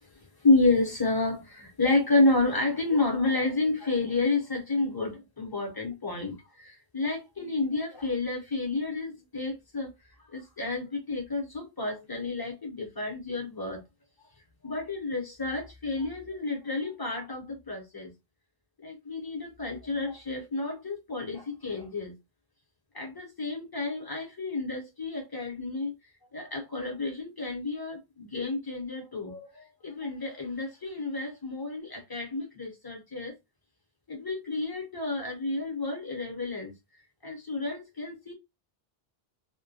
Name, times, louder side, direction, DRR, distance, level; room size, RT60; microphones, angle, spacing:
voice 1, 0.4-9.9 10.2-13.8 14.6-18.1 18.8-22.1 22.9-25.9 26.3-33.3 34.1-36.7 37.2-38.3, left 2 dB, 25° left, 0.7 m, -30 dB
2.1 x 2.1 x 2.7 m
omnidirectional pair, 1.0 m